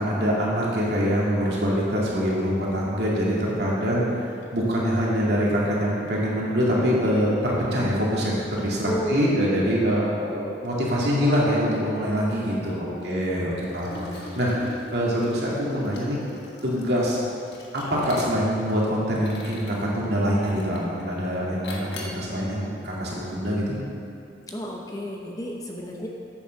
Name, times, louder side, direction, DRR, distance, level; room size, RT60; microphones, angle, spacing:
voice 1, 0.0-4.0 4.5-16.2 16.6-17.2 17.7-23.8, equal, 65° right, -5 dB, 2.4 m, -24 dB
voice 2, 8.9-9.4 12.9-13.8 14.1-14.3 24.5-26.1, equal, 20° left, -1 dB, 0.8 m, -32 dB
Liquid, 13.6-18.7 19.1-19.8 20.4-20.9 21.6-22.2, left 2 dB, 70° left, 1.3 m, -42 dB
8.6 x 7.0 x 6.6 m, 2.6 s
head